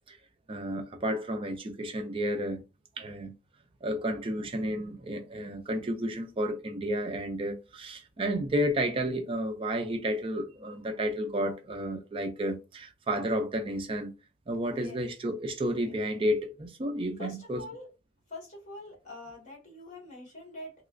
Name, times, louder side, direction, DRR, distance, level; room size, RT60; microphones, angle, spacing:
voice 1, 0.5-2.6 3.0-3.3 3.8-14.1 14.5-17.6, equal, 25° right, 0.4 m, -31 dB
voice 2, 14.7-15.1 15.8-15.9 17.2-17.9 18.3-20.7, left 2 dB, 40° left, 1.6 m, -44 dB
3.1 x 2.9 x 2.5 m
head